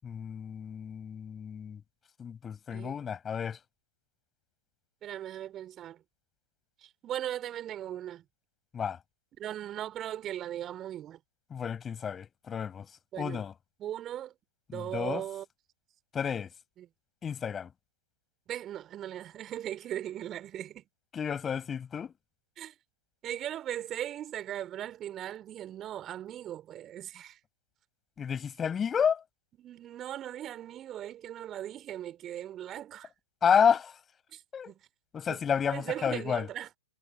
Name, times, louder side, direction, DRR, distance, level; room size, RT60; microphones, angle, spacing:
voice 1, 0.0-1.8 2.2-3.6 8.7-9.0 11.5-12.9 13.2-13.5 14.7-15.2 16.1-16.5 17.2-17.7 21.1-22.1 28.2-29.2 33.4-34.0 34.5-34.7 35.1-36.5, left 7 dB, 20° left, 5.8 m, -30 dB
voice 2, 5.0-6.0 6.8-8.2 9.4-11.2 13.1-13.4 13.8-14.3 14.7-15.4 16.8-16.9 18.5-20.9 22.6-22.7 23.2-27.4 29.6-33.1 34.3-34.8 35.3-35.4 35.7-36.7, right 11 dB, 25° right, 5.3 m, -38 dB
figure-of-eight pair, 110°, 0 cm